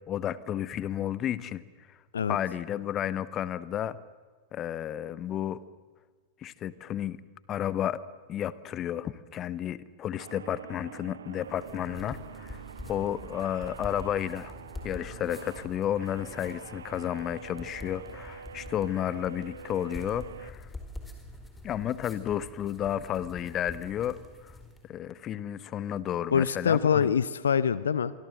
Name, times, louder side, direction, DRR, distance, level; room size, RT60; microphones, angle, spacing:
voice 1, 0.1-1.6 2.3-4.0 4.5-5.6 6.4-7.2 7.5-8.0 8.3-12.6 12.9-14.5 14.8-20.7 21.6-24.2 24.4-24.5 24.9-27.1, left 10 dB, 30° left, 18 dB, 1.1 m, -32 dB
sound 1, 10.2-20.5, right 7 dB, 70° right, 1.0 m, -46 dB
sound 2, 11.4-24.9, left 2 dB, 10° left, 4.4 m, -46 dB
voice 2, 26.3-28.1, left 7 dB, 70° left, 17 dB, 0.7 m, -24 dB
26.0 x 24.5 x 7.7 m, 1.5 s
figure-of-eight pair, 90°, 0 cm